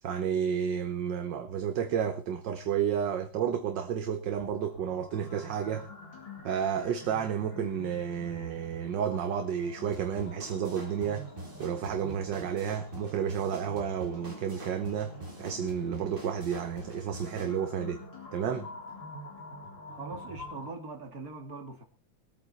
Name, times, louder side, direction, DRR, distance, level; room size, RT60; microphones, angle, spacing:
voice 1, 0.0-5.9 6.4-11.3 11.6-18.0 18.3-18.7, right 8 dB, 65° right, 1.7 m, -31 dB
sound 1, 4.3-20.7, left 1 dB, 70° left, 4.5 m, -47 dB
sound 2, 9.9-17.6, right 1 dB, 25° right, 2.6 m, -45 dB
voice 2, 19.9-21.8, right 3 dB, 45° right, 2.7 m, -41 dB
21.5 x 8.8 x 4.2 m
omnidirectional pair, 2.2 m